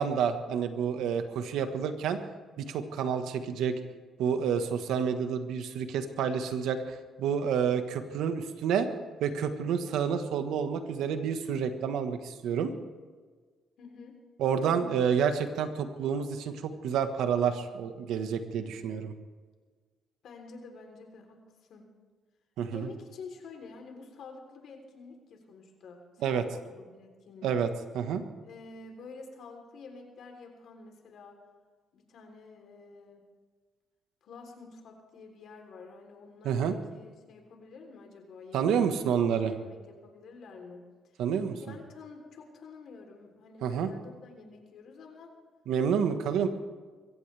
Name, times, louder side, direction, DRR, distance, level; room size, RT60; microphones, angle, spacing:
voice 1, 0.0-2.2 2.6-3.8 4.2-8.9 9.2-12.7 14.4-19.1 22.6-22.9 26.2-26.4 27.4-27.7 27.9-28.2 36.4-36.7 38.5-39.5 41.2-41.7 43.6-43.9 45.7-46.5, right 7 dB, 85° right, 8 dB, 1.4 m, -29 dB
voice 2, 13.8-14.2 20.2-21.4 21.7-21.9 22.7-27.5 28.4-31.4 31.9-33.2 34.2-40.8 41.6-45.3 45.9-46.5, left 4 dB, 70° left, 3 dB, 3.5 m, -49 dB
23.0 x 16.5 x 3.4 m, 1.5 s
cardioid pair, 90°, 0 cm